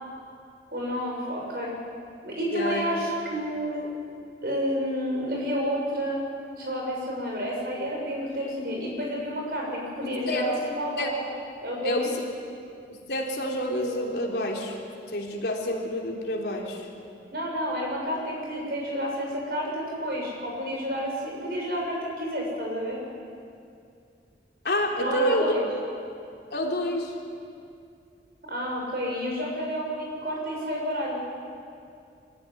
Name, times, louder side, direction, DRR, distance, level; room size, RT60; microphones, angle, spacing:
voice 1, 0.7-1.7 2.2-3.9 4.4-6.2 6.6-11.1 11.6-12.1 17.3-23.0 25.0-25.6 28.5-31.2, equal, 60° right, -1 dB, 6.7 m, -30 dB
voice 2, 2.5-3.0 10.3-10.5 11.0-11.1 11.8-12.2 12.9-14.8 15.1-16.9 24.6-25.5 26.5-27.2, equal, 70° left, -1 dB, 3.4 m, -28 dB
24.0 x 15.5 x 9.8 m, 2.4 s
head